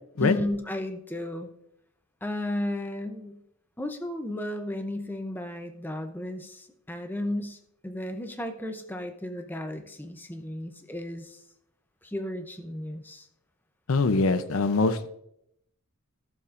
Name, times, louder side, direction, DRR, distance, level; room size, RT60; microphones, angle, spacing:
voice 1, 0.2-1.5 2.2-3.4 3.8-7.6 7.8-11.4 12.0-13.3, left 1 dB, 10° left, 6 dB, 0.6 m, -34 dB
voice 2, 13.9-15.1, left 3 dB, 75° left, 12 dB, 0.6 m, -23 dB
16.0 x 7.1 x 2.5 m, 0.76 s
head